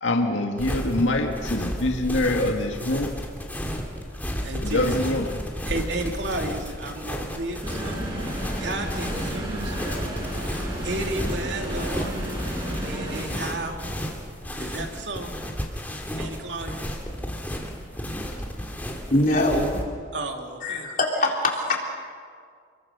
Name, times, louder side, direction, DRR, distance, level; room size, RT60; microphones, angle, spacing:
voice 1, 0.0-3.1 4.6-5.3, left 1 dB, 85° left, 2 dB, 2.0 m, -24 dB
sound 1, 0.6-19.8, equal, 10° left, 2.8 m, -33 dB
voice 2, 4.4-5.0 5.7-10.1 10.5-12.1 12.8-13.9 14.6-15.3 16.2-16.7 20.1-20.9, right 2 dB, 70° right, 3 dB, 2.9 m, -33 dB
sound 2, 7.6-13.2, right 1 dB, 25° right, 7.0 m, -32 dB
voice 3, 19.1-19.8 20.6-21.8, left 1 dB, 45° left, -1 dB, 4.0 m, -23 dB
29.5 x 22.5 x 6.8 m, 2.1 s
head